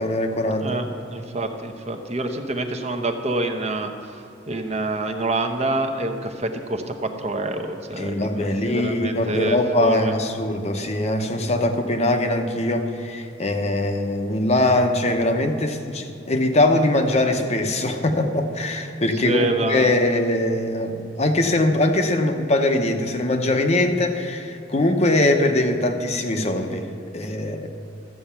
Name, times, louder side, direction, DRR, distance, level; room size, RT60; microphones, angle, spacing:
voice 1, 0.0-0.7 8.0-27.7, left 1 dB, 35° left, 5 dB, 0.8 m, -22 dB
voice 2, 0.6-3.9 4.5-10.1 19.2-19.9, right 2 dB, 35° right, 5 dB, 0.9 m, -26 dB
13.5 x 7.9 x 5.7 m, 2.7 s
head